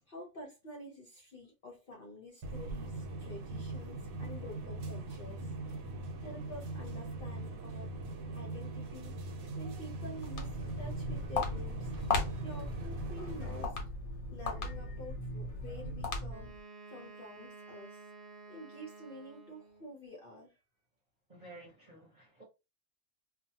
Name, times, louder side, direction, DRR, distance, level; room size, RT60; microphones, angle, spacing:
voice 1, 0.0-5.5 6.2-7.9 8.3-9.2 9.5-13.8 14.3-16.5 16.9-18.0 18.5-20.6, left 1 dB, 50° left, 0.7 m, -49 dB
sound 1, 2.4-13.6, right 2 dB, 80° right, 1.1 m, -41 dB
Walk footsteps, 10.1-16.6, left 3 dB, 85° left, 1.2 m, -37 dB
Wind instrument woodwind instrument, 16.3-20.0, right 4 dB, 60° right, 0.5 m, -52 dB
voice 2, 21.3-22.4, right 2 dB, 35° right, 0.9 m, -53 dB
2.5 x 2.3 x 2.7 m
omnidirectional pair, 1.5 m